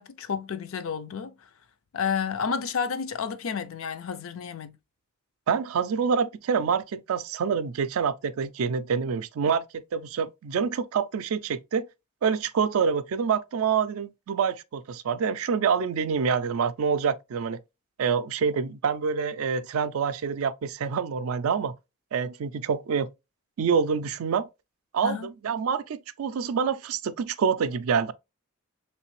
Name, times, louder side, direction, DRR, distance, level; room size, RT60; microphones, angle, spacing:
voice 1, 0.0-1.3 1.9-4.8 25.0-25.3, left 6 dB, 70° left, 0.5 m, -31 dB
voice 2, 5.5-9.6 9.9-11.9 12.2-17.6 18.0-21.7 22.1-23.1 23.6-24.5 24.9-28.1, right 6 dB, 75° right, 0.4 m, -26 dB
3.2 x 3.2 x 3.1 m
head